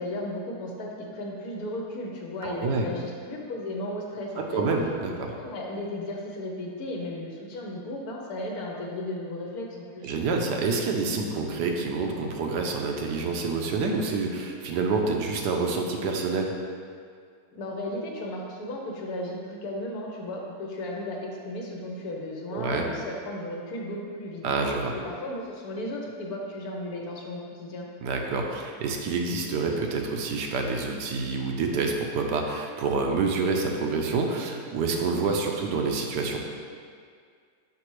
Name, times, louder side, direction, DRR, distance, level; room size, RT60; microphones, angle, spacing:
voice 1, 0.0-4.6 5.4-10.1 17.5-24.4 25.0-27.9, left 1 dB, 65° left, -1 dB, 1.2 m, -35 dB
voice 2, 2.4-2.9 4.4-5.3 10.0-16.5 22.5-22.8 24.4-24.9 28.0-36.4, right 4 dB, 80° right, 2 dB, 1.2 m, -27 dB
5.9 x 5.4 x 3.1 m, 2.1 s
omnidirectional pair, 1.8 m